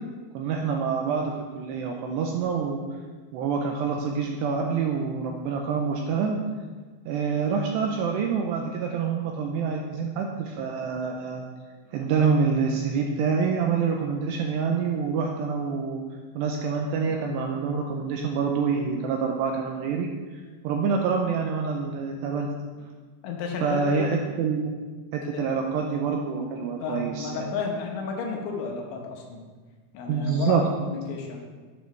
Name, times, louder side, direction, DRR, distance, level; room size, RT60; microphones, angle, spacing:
voice 1, 0.3-2.8 3.3-6.4 7.1-11.4 11.9-16.0 16.3-22.5 23.6-24.7 25.1-27.5 30.1-30.6, right 5 dB, 85° right, 2 dB, 2.5 m, -26 dB
voice 2, 23.2-24.1 25.3-25.6 26.8-29.4 29.9-31.4, left 5 dB, 80° left, 1 dB, 3.5 m, -32 dB
9.8 x 9.3 x 3.3 m, 1.4 s
omnidirectional pair, 5.5 m